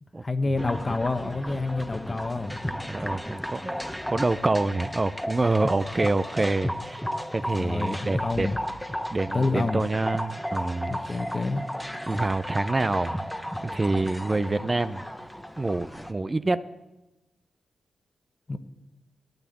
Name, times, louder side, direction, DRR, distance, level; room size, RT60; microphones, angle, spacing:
voice 1, 0.2-2.5 7.5-8.5 9.3-9.8 10.9-11.6 18.5-18.6, left 3 dB, 35° left, 10 dB, 1.1 m, -28 dB
sound 1, 0.6-16.1, equal, 5° left, 1.0 m, -34 dB
voice 2, 2.9-7.0 7.3-8.5 9.1-11.0 12.1-13.2 13.6-15.0 15.6-16.6, right 2 dB, 30° right, 13 dB, 0.5 m, -26 dB
12.0 x 8.5 x 9.3 m, 1.0 s
cardioid pair, 65°, 0 cm